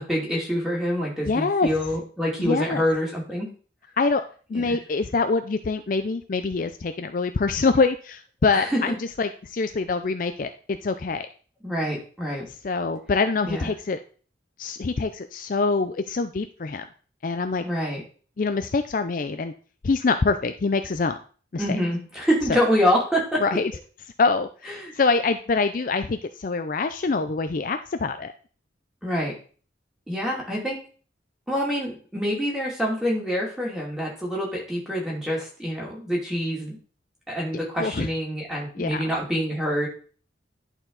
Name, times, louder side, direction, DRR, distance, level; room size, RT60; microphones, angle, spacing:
voice 1, 0.0-3.5 4.5-4.8 8.5-8.8 11.6-12.5 13.4-13.7 17.6-18.0 21.6-23.4 24.8-24.9 29.0-29.3 30.1-30.8 31.5-36.8 37.3-39.9, equal, 5° right, -3 dB, 2.4 m, -26 dB
voice 2, 1.2-1.7 2.4-2.8 4.0-4.2 4.5-11.3 12.6-14.0 14.6-16.9 17.2-17.6 18.4-19.5 19.8-21.2 21.5-21.6 22.5-22.6 23.4-23.7 24.2-28.3 37.8-38.1 38.8-39.0, left 4 dB, 45° left, 8 dB, 0.4 m, -25 dB
11.0 x 4.5 x 3.9 m, 0.40 s
head